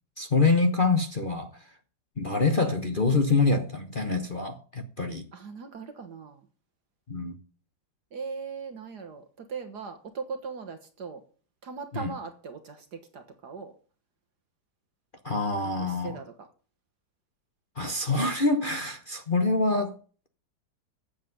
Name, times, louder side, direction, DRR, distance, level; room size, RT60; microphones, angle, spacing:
voice 1, 0.2-1.5 2.2-5.3 7.1-7.4 11.9-12.1 15.2-16.2 17.8-20.0, left 3 dB, 35° left, 0.9 m, -25 dB
voice 2, 5.3-6.4 8.1-11.2 11.6-13.7 15.8-16.5, right 5 dB, 55° right, 1.7 m, -39 dB
8.6 x 7.6 x 7.8 m
omnidirectional pair, 2.2 m